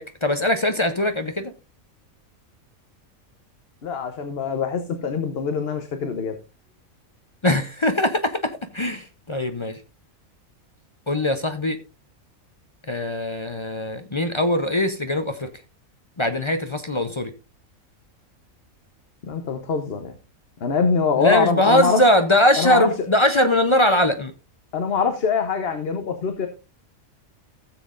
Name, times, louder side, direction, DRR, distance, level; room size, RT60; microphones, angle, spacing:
voice 1, 0.0-1.5 7.4-9.8 11.1-11.8 12.9-15.5 16.2-17.3 21.2-24.3, left 1 dB, 35° left, 0.5 m, -21 dB
voice 2, 3.8-6.3 19.2-20.1 20.6-22.0 22.6-22.9 24.7-26.5, left 5 dB, 50° left, 1.1 m, -24 dB
16.0 x 7.4 x 2.5 m
omnidirectional pair, 1.5 m